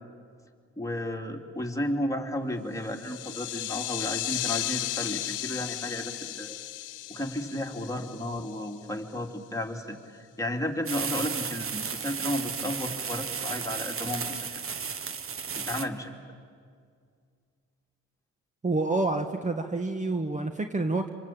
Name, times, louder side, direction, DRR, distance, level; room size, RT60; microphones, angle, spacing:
voice 1, 0.8-6.6 7.1-14.6 15.5-16.1, left 1 dB, 10° left, 2 dB, 3.0 m, -33 dB
sound 1, 2.8-8.9, left 14 dB, 85° left, 0.9 m, -35 dB
sound 2, 10.9-15.9, right 6 dB, 45° right, 1.5 m, -34 dB
voice 2, 18.6-21.1, right 2 dB, 25° right, 6 dB, 1.5 m, -28 dB
26.0 x 25.5 x 8.7 m, 2.2 s
cardioid pair, 90°, 30 cm